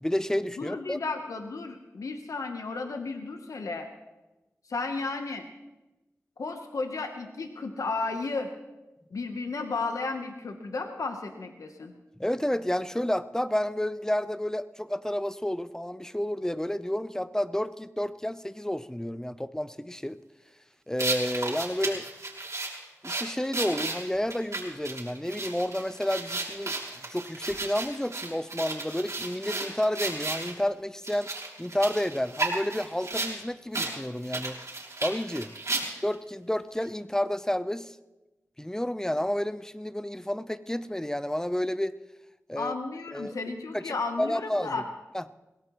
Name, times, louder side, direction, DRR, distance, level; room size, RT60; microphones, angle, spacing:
voice 1, 0.0-1.0 12.2-20.2 20.9-22.0 23.0-26.7 27.1-31.3 31.6-34.6 35.0-35.5 36.0-38.0 38.6-42.0 42.5-42.7 43.1-43.3 43.7-44.8 45.1-45.2, left 1 dB, 10° left, 14 dB, 0.6 m, -30 dB
voice 2, 0.6-3.9 4.7-5.4 6.4-8.5 9.1-11.9 42.6-44.9, left 3 dB, 80° left, 5 dB, 1.0 m, -33 dB
sound 1, 21.0-30.5 31.0-33.3 33.7-33.9 34.2-36.1, right 2 dB, 65° right, 3.2 m, -33 dB
21.5 x 17.0 x 3.1 m, 1.1 s
cardioid pair, 45°, 6 cm